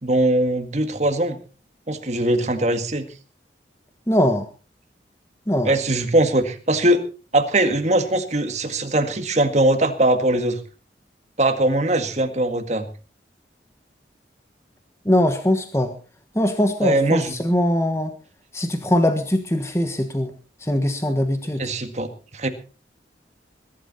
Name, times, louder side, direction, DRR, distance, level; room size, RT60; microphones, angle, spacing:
voice 1, 0.0-1.4 1.9-3.0 5.6-7.0 7.3-10.6 11.4-12.9 16.8-17.3 21.6-22.1 22.3-22.5, right 1 dB, 40° right, 7 dB, 1.9 m, -21 dB
voice 2, 4.1-4.5 5.5-5.7 15.0-15.9 16.3-18.1 18.5-20.3 20.6-21.6, left 1 dB, 15° left, 7 dB, 1.3 m, -21 dB
21.0 x 12.0 x 4.2 m, 0.36 s
head